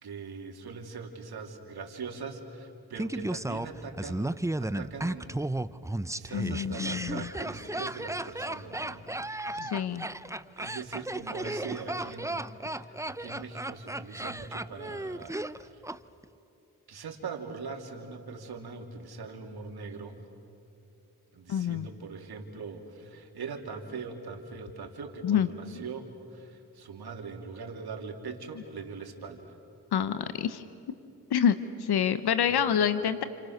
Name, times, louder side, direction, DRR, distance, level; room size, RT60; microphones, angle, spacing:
voice 1, 0.0-5.6 6.1-10.0 10.6-15.4 15.7-15.8 16.9-20.2 21.3-29.6 32.5-32.6, right 4 dB, 75° right, 2 dB, 3.1 m, -41 dB
Laughter, 3.0-16.0 16.2-16.3, right 1 dB, 10° right, 0.8 m, -34 dB
voice 2, 6.3-7.3 9.5-10.1 21.5-21.9 25.2-25.5 29.9-30.6 31.3-33.2, left 8 dB, 80° left, 11 dB, 1.0 m, -27 dB
29.0 x 29.0 x 6.6 m, 2.8 s
cardioid pair, 50°, 38 cm